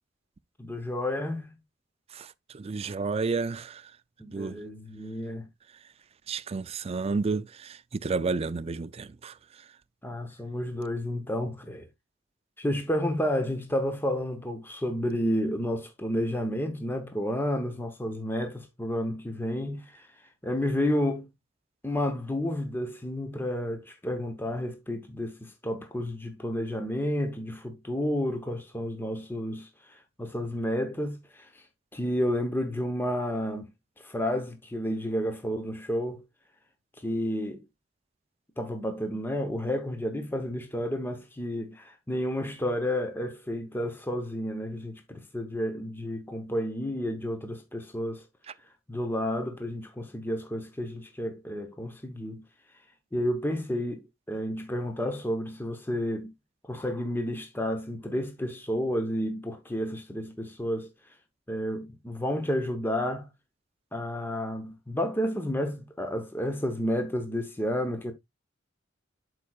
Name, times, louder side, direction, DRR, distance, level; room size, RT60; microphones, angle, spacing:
voice 1, 0.6-1.6 4.2-5.5 10.0-11.9 12.6-21.3 21.8-31.7 31.9-33.7 34.0-36.2 37.0-37.6 38.6-48.3 48.9-52.4 53.1-56.3 56.6-60.9 61.5-63.3 63.9-68.1, equal, 10° left, 0.9 m, -31 dB
voice 2, 2.5-3.8 4.3-4.6 6.3-9.3, right 4 dB, 30° right, 0.4 m, -31 dB
11.5 x 4.8 x 2.3 m
head